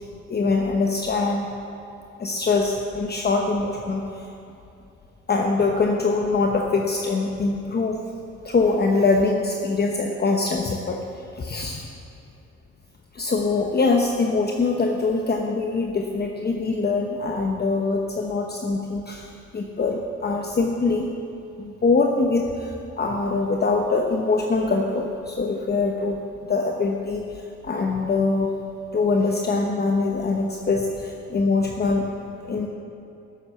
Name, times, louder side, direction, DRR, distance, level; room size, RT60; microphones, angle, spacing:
voice 1, 0.3-1.5 2.2-4.3 5.3-8.0 8.4-11.0 11.3-11.9 13.1-21.1 21.6-28.5 28.9-32.1 32.4-32.7, left 3 dB, 35° left, 1 dB, 1.0 m, -23 dB
12.0 x 7.8 x 7.5 m, 2.7 s
cardioid pair, 90°, 30 cm